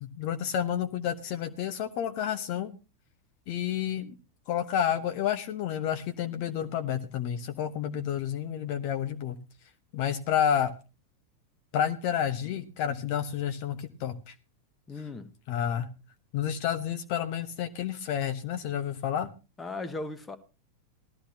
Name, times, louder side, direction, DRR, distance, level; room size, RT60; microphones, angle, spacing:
voice 1, 0.0-2.8 3.5-4.1 4.5-9.4 9.9-10.7 11.7-14.3 15.5-15.9 16.3-19.3, left 9 dB, 45° left, 1.1 m, -30 dB
voice 2, 14.9-15.3 19.6-20.4, left 3 dB, 15° left, 1.5 m, -37 dB
18.0 x 13.0 x 2.8 m
figure-of-eight pair, 90°, 0 cm